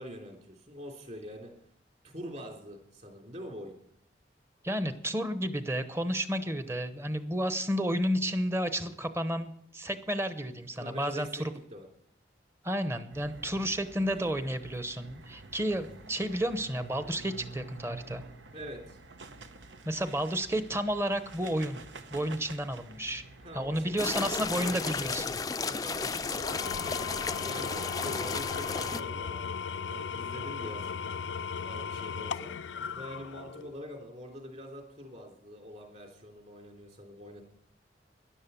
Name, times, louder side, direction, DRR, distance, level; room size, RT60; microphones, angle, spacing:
voice 1, 0.0-1.5 2.0-3.7 10.8-11.5 11.7-11.9 18.5-19.0 23.4-24.3 24.6-24.8 25.6-29.4 29.8-31.1 31.6-32.5 32.9-37.4, equal, 40° right, 2 dB, 3.5 m, -44 dB
voice 2, 4.6-11.5 12.6-18.3 19.8-21.8 22.1-23.2 23.5-25.4, equal, 15° right, 10 dB, 0.9 m, -31 dB
sound 1, 13.1-24.7, right 3 dB, 80° right, 1.1 m, -49 dB
sound 2, 24.0-29.0, left 4 dB, 20° left, 0.4 m, -33 dB
Engine / Tools, 26.3-33.8, left 6 dB, 75° left, 0.4 m, -37 dB
13.0 x 11.0 x 7.0 m, 0.72 s
head